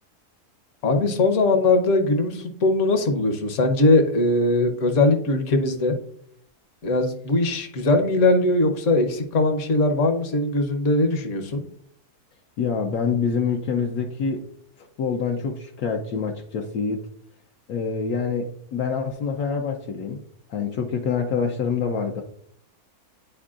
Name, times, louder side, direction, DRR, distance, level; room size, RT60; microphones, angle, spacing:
voice 1, 0.8-6.0 6.8-11.6, left 2 dB, 55° left, 6 dB, 1.2 m, -20 dB
voice 2, 12.6-14.4 15.0-17.0 17.7-20.2 20.5-22.2, left 5 dB, 75° left, 2 dB, 1.1 m, -26 dB
11.0 x 4.5 x 2.4 m, 0.65 s
omnidirectional pair, 1.6 m